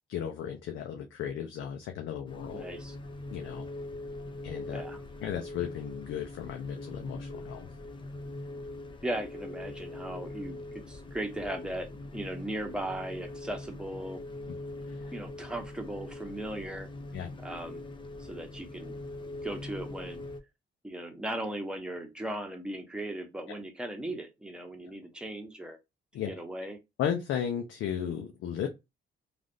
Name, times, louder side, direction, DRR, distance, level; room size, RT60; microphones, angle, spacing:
voice 1, 0.1-2.6 3.3-3.7 4.4-4.8 5.2-7.7 14.9-15.1 17.1-17.4 26.1-26.3 27.0-28.7, left 9 dB, 80° left, 0.6 m, -35 dB
sound 1, 2.3-20.4, left 2 dB, 25° left, 0.6 m, -42 dB
voice 2, 2.5-3.0 4.6-5.0 9.0-14.2 15.1-16.9 17.4-17.8 18.2-18.9 19.4-20.2 20.8-25.8 26.3-26.8, right 1 dB, 5° right, 0.9 m, -37 dB
3.2 x 2.5 x 2.6 m
cardioid pair, 90°, 20 cm